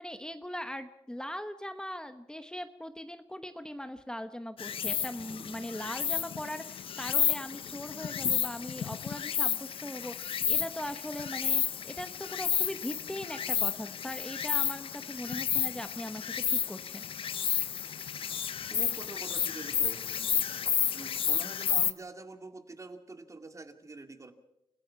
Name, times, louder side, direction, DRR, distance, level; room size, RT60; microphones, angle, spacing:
voice 1, 0.0-17.0, left 1 dB, 10° left, 9 dB, 1.0 m, -40 dB
Insect, 4.6-21.9, left 8 dB, 90° left, 0.7 m, -31 dB
voice 2, 18.7-20.1 20.9-24.3, right 3 dB, 35° right, 7 dB, 2.2 m, -45 dB
28.5 x 16.0 x 5.8 m, 0.85 s
cardioid pair, 85°, 9 cm